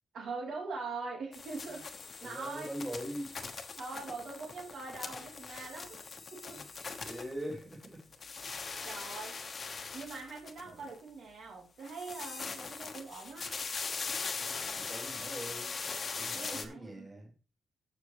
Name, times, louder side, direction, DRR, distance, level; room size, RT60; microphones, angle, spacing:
voice 1, 0.1-1.8 2.2-2.7 3.8-6.6 8.8-9.3 9.9-13.5 16.3-17.1, right 4 dB, 70° right, -2 dB, 3.4 m, -42 dB
sound 1, 1.3-7.9 8.1-11.0 11.8-16.7, left 4 dB, 40° left, 1.2 m, -41 dB
voice 2, 2.2-3.4 6.5-6.7 7.0-8.0 10.6-10.9 14.7-15.8 16.1-17.3, equal, 15° right, -3 dB, 3.0 m, -42 dB
14.5 x 6.2 x 3.2 m, 0.37 s
wide cardioid pair, 150°, 0 cm